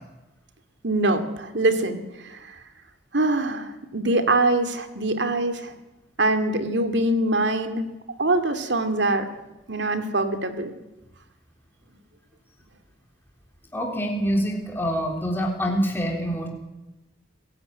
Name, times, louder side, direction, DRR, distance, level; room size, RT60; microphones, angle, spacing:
voice 1, 0.8-2.0 2.3-2.4 3.1-5.7 6.2-7.8 8.2-9.2 9.7-10.7, right 2 dB, 65° right, 8 dB, 2.5 m, -23 dB
voice 2, 13.7-16.5, equal, 10° left, 1 dB, 3.7 m, -25 dB
28.0 x 16.5 x 9.6 m, 1.0 s
head